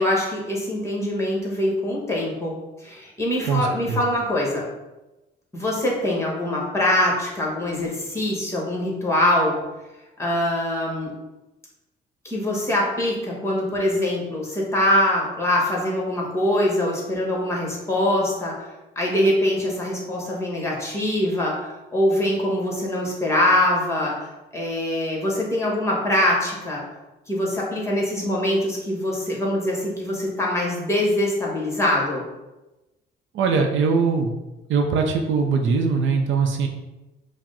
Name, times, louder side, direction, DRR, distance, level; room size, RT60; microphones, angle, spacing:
voice 1, 0.0-2.5 2.8-4.6 5.5-9.6 10.2-11.1 12.2-18.5 18.9-26.8 27.3-32.2, left 1 dB, 15° left, -3 dB, 1.3 m, -23 dB
voice 2, 3.5-4.0 33.3-34.3 34.7-36.7, right 5 dB, 75° right, 3 dB, 0.6 m, -21 dB
4.8 x 2.1 x 3.8 m, 1.0 s
cardioid pair, 90°, 20 cm